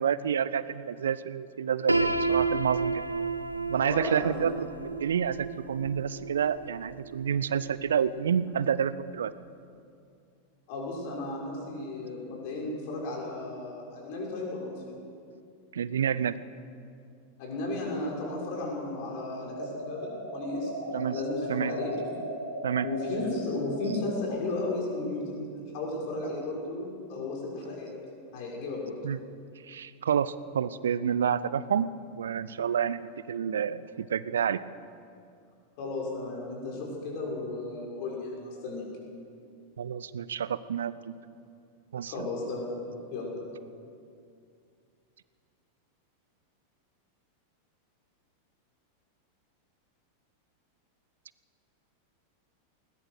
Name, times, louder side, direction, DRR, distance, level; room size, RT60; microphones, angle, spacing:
voice 1, 0.0-3.0 3.7-4.5 5.0-9.3 15.7-16.4 20.9-21.2 21.5-21.7 22.6-22.9 29.0-29.2 29.6-31.9 32.2-34.6 39.8-41.2 41.9-42.3, right 8 dB, 65° right, 17 dB, 0.6 m, -29 dB
Piano, 1.9-7.7, right 3 dB, 85° right, 1.0 m, -31 dB
voice 2, 3.8-4.5 10.7-14.8 17.4-20.7 21.1-21.9 22.8-27.9 28.3-29.0 35.8-38.8 42.1-42.7 43.1-43.3, left 2 dB, 45° left, -2 dB, 6.5 m, -34 dB
sound 1, 19.5-24.4, right 1 dB, 90° left, 3.4 m, -37 dB
20.5 x 19.0 x 6.5 m, 2.4 s
figure-of-eight pair, 90°, 0 cm